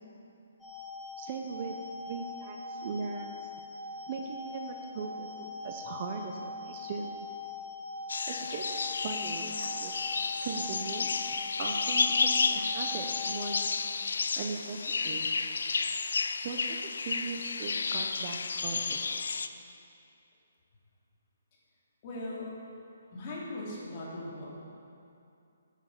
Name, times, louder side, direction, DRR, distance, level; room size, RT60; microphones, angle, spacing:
sound 1, 0.6-13.6, left 3 dB, 5° left, 1.3 m, -42 dB
voice 1, 1.2-1.8 2.1-3.5 4.1-7.1 8.3-8.6 9.0-9.9 10.4-11.3 11.6-13.8 14.4-15.3 16.4-16.8 17.0-19.2, right 5 dB, 30° right, 3 dB, 0.7 m, -39 dB
sound 2, 8.1-19.5, left 4 dB, 75° left, 0.5 m, -31 dB
voice 2, 22.0-22.5 23.1-24.5, left 2 dB, 30° left, -5 dB, 2.8 m, -39 dB
9.7 x 9.1 x 5.6 m, 2.6 s
hypercardioid pair, 165°, 0 cm